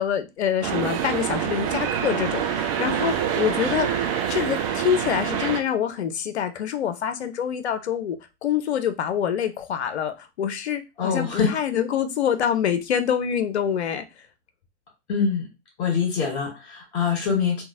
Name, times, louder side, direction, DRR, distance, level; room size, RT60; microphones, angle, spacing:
voice 1, 0.0-8.2 8.4-14.0, left 9 dB, 70° left, 0.5 m, -26 dB
sound 1, 0.6-5.6, right 8 dB, 30° right, 0.4 m, -26 dB
voice 2, 11.0-11.5 15.1-15.5 15.8-17.6, left 6 dB, 50° left, 1.3 m, -24 dB
2.9 x 2.3 x 2.5 m
figure-of-eight pair, 95°, 34 cm